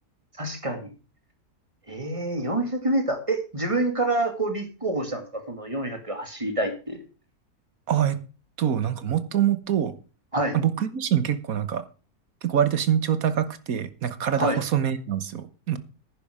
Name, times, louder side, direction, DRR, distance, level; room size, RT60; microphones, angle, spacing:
voice 1, 0.4-0.9 1.9-7.0 10.3-10.6 14.4-14.6, right 2 dB, 20° right, 6 dB, 2.1 m, -27 dB
voice 2, 7.9-8.2 8.6-9.9 10.5-11.8 12.4-15.8, right 9 dB, 65° right, 13 dB, 1.5 m, -25 dB
11.0 x 9.9 x 5.0 m, 0.34 s
omnidirectional pair, 1.6 m